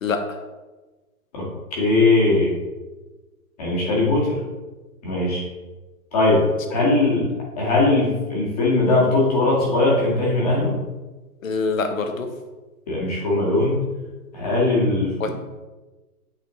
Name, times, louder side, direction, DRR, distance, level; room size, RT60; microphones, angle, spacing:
voice 1, 0.0-0.4 6.7-6.9 11.4-12.3 15.2-15.3, left 4 dB, 60° left, 6 dB, 1.0 m, -25 dB
voice 2, 1.8-2.5 3.6-4.4 5.0-5.4 6.1-6.4 6.7-7.3 7.6-10.7 12.9-13.8 14.3-15.3, left 2 dB, 25° left, -4 dB, 1.6 m, -20 dB
9.1 x 4.1 x 3.1 m, 1.2 s
hypercardioid pair, 170°, 46 cm